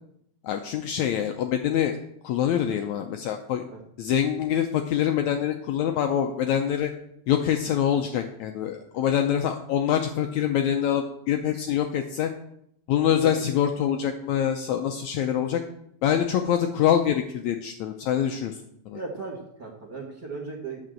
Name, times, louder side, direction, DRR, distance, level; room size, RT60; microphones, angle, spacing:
voice 1, 0.4-2.0 2.2-3.6 4.0-6.9 7.3-12.3 12.9-15.6 16.0-18.6 18.9-19.0, left 9 dB, 75° left, 5 dB, 1.7 m, -25 dB
voice 2, 18.9-20.9, right 4 dB, 40° right, -2 dB, 1.7 m, -36 dB
10.5 x 6.0 x 7.7 m, 0.76 s
omnidirectional pair, 3.9 m